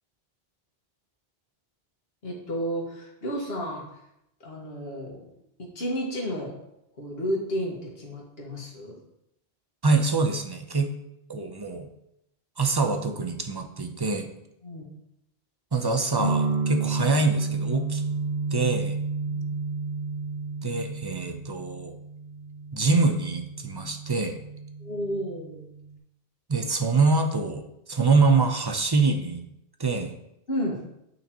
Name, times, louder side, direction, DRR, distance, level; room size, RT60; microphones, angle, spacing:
voice 1, 2.2-3.9 4.4-5.2 5.6-6.6 7.0-8.9 14.6-14.9 19.2-19.5 24.8-25.6 30.5-30.8, equal, 70° left, -2 dB, 1.9 m, -32 dB
voice 2, 9.8-10.9 11.3-11.9 12.6-14.3 15.7-18.0 18.5-19.0 20.6-21.9 22.7-24.4 26.5-29.4 29.8-30.1, right 3 dB, 30° right, 5 dB, 0.5 m, -24 dB
sound 1, 16.2-26.0, right 4 dB, 85° right, 1.8 m, -31 dB
8.8 x 5.7 x 3.0 m, 0.82 s
omnidirectional pair, 1.1 m